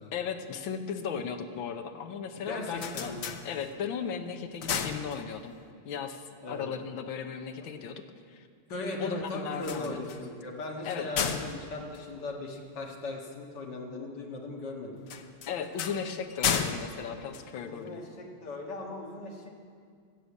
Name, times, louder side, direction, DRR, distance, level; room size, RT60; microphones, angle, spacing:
voice 1, 0.1-3.1 3.4-5.5 5.8-8.0 8.3-8.4 9.0-10.0 10.8-11.1 15.5-18.0, left 7 dB, 70° left, 7 dB, 1.6 m, -36 dB
voice 2, 2.4-3.4 6.4-6.7 7.6-7.7 8.7-15.0 17.6-19.5, left 2 dB, 50° left, 0 dB, 2.2 m, -38 dB
sound 1, 2.5-4.0 4.4-5.7 9.5-12.9 15.0-18.1, left 7 dB, 85° left, 0.7 m, -35 dB
15.0 x 6.9 x 8.2 m, 2.1 s
omnidirectional pair, 2.4 m